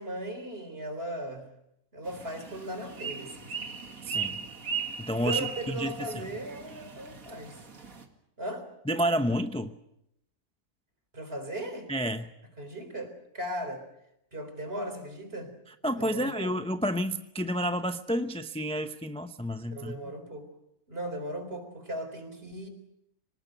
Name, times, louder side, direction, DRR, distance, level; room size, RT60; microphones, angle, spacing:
voice 1, 0.0-1.5 1.9-3.7 5.2-7.6 8.4-8.7 11.1-11.9 12.6-13.8 14.3-15.5 16.0-16.5 19.7-20.5 20.9-22.7, right 1 dB, 45° right, 8 dB, 4.1 m, -37 dB
sound 1, 2.0-8.0, right 6 dB, 85° right, 2.6 m, -37 dB
voice 2, 4.1-4.4 5.0-6.3 8.9-9.8 11.9-12.3 15.8-20.0, equal, 5° left, 8 dB, 0.6 m, -30 dB
24.5 x 19.5 x 8.0 m, 0.80 s
omnidirectional pair, 1.4 m